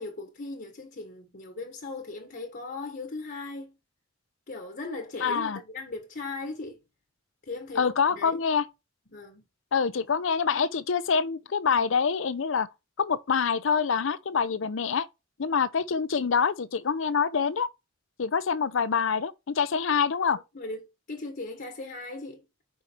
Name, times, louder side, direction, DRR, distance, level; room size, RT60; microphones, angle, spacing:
voice 1, 0.0-3.7 4.5-6.8 7.4-8.4 9.1-9.4 10.5-10.7 20.5-22.4, left 3 dB, 50° left, 1.2 m, -38 dB
voice 2, 5.2-5.6 7.8-8.6 9.7-12.7 13.0-15.1 15.4-17.7 18.2-20.4, left 6 dB, 75° left, 0.6 m, -26 dB
5.2 x 5.0 x 4.4 m
head